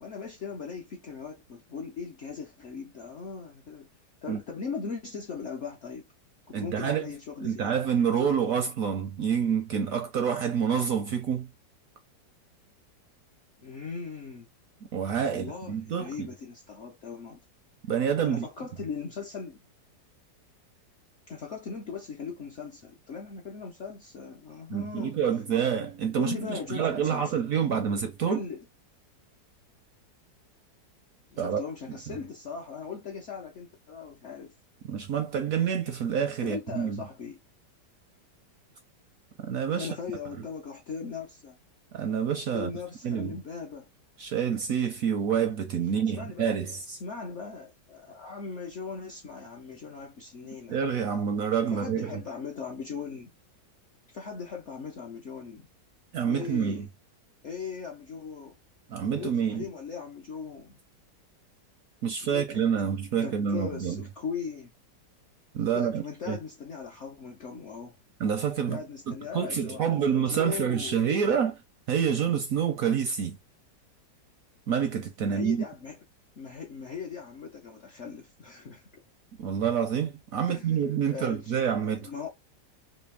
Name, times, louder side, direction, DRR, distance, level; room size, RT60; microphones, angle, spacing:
voice 1, 0.0-3.9 4.2-6.1 6.5-7.8 13.6-14.5 15.3-17.4 18.2-19.6 21.3-25.1 26.2-27.4 28.3-28.6 31.3-34.5 36.4-37.4 39.8-41.6 42.5-43.9 46.2-46.6 46.9-50.8 51.7-53.3 54.1-55.7 56.3-56.9 57.4-58.6 59.1-60.8 62.2-62.6 63.1-64.7 65.7-68.0 68.7-71.0 75.2-76.0 76.4-79.0 80.5-80.8 81.1-82.3, left 5 dB, 65° left, 0.7 m, -39 dB
voice 2, 6.5-7.0 7.4-11.5 14.9-16.3 17.8-18.5 24.7-28.4 31.4-31.6 32.1-32.2 34.9-37.0 39.5-39.9 41.9-42.7 43.0-43.3 44.2-46.8 50.7-52.2 56.1-56.9 58.9-59.7 62.0-64.0 65.5-66.4 68.2-68.8 69.1-71.6 71.9-73.4 74.7-75.6 79.4-82.1, right 7 dB, 70° right, 0.8 m, -27 dB
3.3 x 2.7 x 3.3 m
omnidirectional pair, 1.9 m